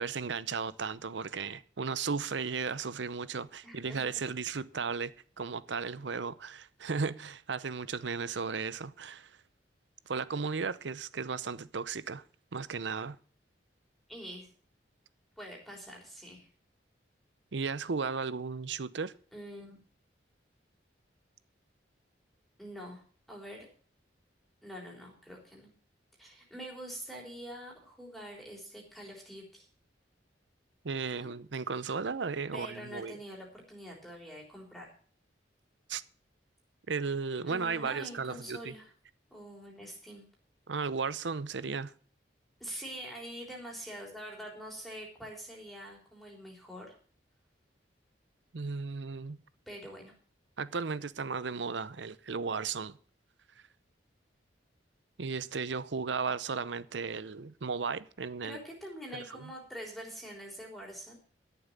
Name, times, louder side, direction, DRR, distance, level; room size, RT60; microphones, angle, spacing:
voice 1, 0.0-9.4 10.1-12.2 12.5-13.2 17.5-19.1 30.8-33.2 35.9-36.0 36.9-38.7 40.7-41.9 48.5-49.4 50.6-53.0 55.2-58.6 59.1-59.5, right 5 dB, 80° right, 0.7 m, -35 dB
voice 2, 3.6-4.0 14.1-14.5 15.4-16.5 19.3-19.8 22.6-23.7 24.6-25.7 26.2-29.7 31.2-31.3 32.5-34.9 37.5-38.9 39.3-40.2 42.6-46.9 49.7-50.1 58.4-61.2, equal, ahead, 3.6 m, -45 dB
13.0 x 7.0 x 7.2 m
head